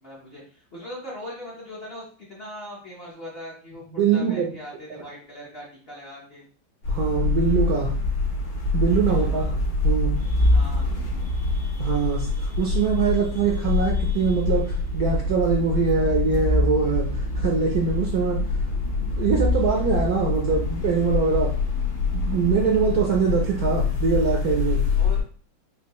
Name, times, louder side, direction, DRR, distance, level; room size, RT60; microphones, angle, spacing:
voice 1, 0.0-6.4 9.1-9.6 10.5-10.9 25.0-25.2, left 1 dB, 40° left, -5 dB, 0.9 m, -40 dB
voice 2, 3.9-4.5 6.9-7.9 8.7-9.5 9.8-10.1 11.8-18.4 19.0-21.5 22.1-24.8, right 5 dB, 65° right, 0 dB, 0.9 m, -23 dB
sound 1, 6.8-25.2, left 3 dB, 90° left, 2.3 m, -25 dB
5.4 x 2.7 x 3.0 m, 0.43 s
omnidirectional pair, 2.2 m